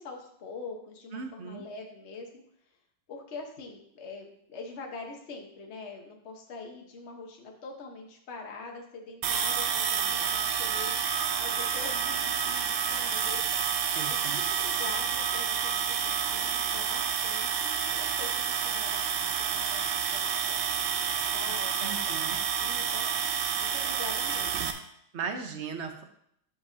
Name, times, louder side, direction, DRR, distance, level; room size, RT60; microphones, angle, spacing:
voice 1, 0.0-2.4 3.1-10.9 11.4-13.7 14.0-19.8 20.1-20.4 20.7-23.1 23.6-24.8, left 4 dB, 40° left, 1 dB, 1.3 m, -44 dB
voice 2, 1.1-1.6 13.9-14.4 21.8-22.4 25.1-26.0, right 5 dB, 50° right, 5 dB, 0.8 m, -37 dB
sound 1, 9.2-24.7, right 7 dB, 85° right, 1.5 m, -29 dB
13.5 x 5.5 x 2.8 m, 0.72 s
omnidirectional pair, 2.1 m